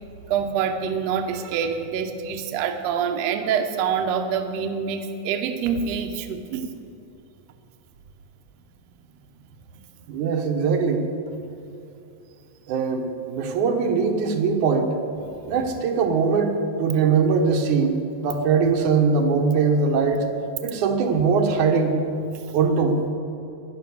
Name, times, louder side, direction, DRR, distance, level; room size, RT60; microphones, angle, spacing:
voice 1, 0.3-6.7 15.3-15.4, right 7 dB, 70° right, 5 dB, 1.9 m, -26 dB
voice 2, 10.1-11.1 12.7-14.9 15.5-20.3 20.6-22.0 22.5-23.0, right 5 dB, 85° right, 3 dB, 2.7 m, -21 dB
13.0 x 10.5 x 7.1 m, 2.7 s
omnidirectional pair, 3.3 m